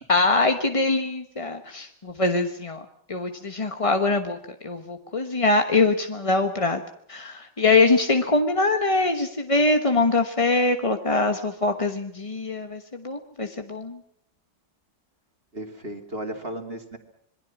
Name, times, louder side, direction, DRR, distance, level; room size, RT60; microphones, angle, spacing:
voice 1, 0.1-2.8 3.1-4.4 4.6-6.8 7.1-14.0, left 3 dB, 20° left, 6 dB, 0.9 m, -23 dB
voice 2, 15.5-17.0, right 1 dB, 30° right, 5 dB, 2.7 m, -34 dB
27.0 x 22.0 x 6.0 m, 0.68 s
omnidirectional pair, 2.2 m